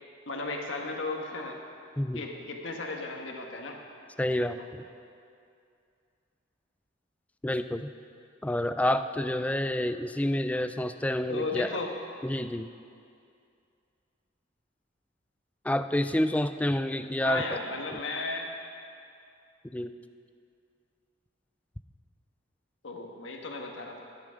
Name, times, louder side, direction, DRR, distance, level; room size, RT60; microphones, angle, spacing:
voice 1, 0.3-1.6 2.1-3.8 4.6-4.7 11.3-11.9 17.2-18.5 22.8-24.0, left 3 dB, 75° left, 1 dB, 1.5 m, -35 dB
voice 2, 4.2-4.8 7.4-7.9 8.4-11.7 12.2-12.7 15.6-17.4 17.9-18.0 19.7-19.9, left 1 dB, 5° left, 10 dB, 0.3 m, -28 dB
12.0 x 10.5 x 5.2 m, 2.4 s
head